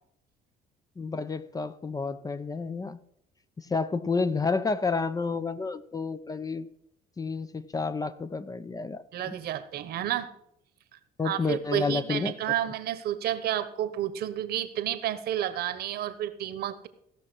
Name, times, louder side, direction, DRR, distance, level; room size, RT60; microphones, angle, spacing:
voice 1, 1.0-3.0 3.6-6.7 7.2-9.4 11.2-12.3, left 4 dB, 20° left, 14 dB, 0.6 m, -30 dB
voice 2, 9.1-10.3 11.2-16.9, right 11 dB, 70° right, 12 dB, 1.1 m, -31 dB
16.0 x 6.0 x 6.2 m, 0.76 s
cardioid pair, 110°, 17 cm